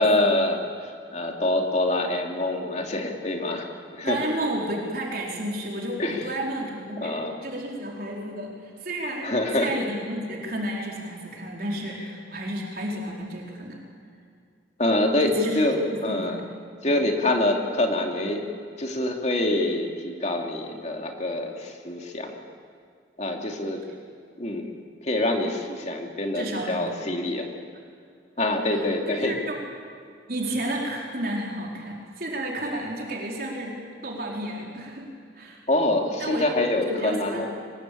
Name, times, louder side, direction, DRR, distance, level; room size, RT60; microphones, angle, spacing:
voice 1, 0.0-3.7 3.9-4.2 6.0-6.3 7.0-7.3 9.2-9.7 14.8-16.4 16.8-18.5 18.8-22.4 23.2-23.8 24.4-24.7 25.0-27.5 28.4-29.4 35.7-37.5, left 1 dB, 40° left, 2 dB, 2.7 m, -25 dB
voice 2, 4.0-13.8 15.2-15.6 16.1-16.4 26.3-27.0 28.7-29.6 30.3-33.7 34.0-35.7 36.2-36.4 36.9-37.5, right 1 dB, 55° right, -2 dB, 4.5 m, -32 dB
24.0 x 20.5 x 8.7 m, 2.3 s
head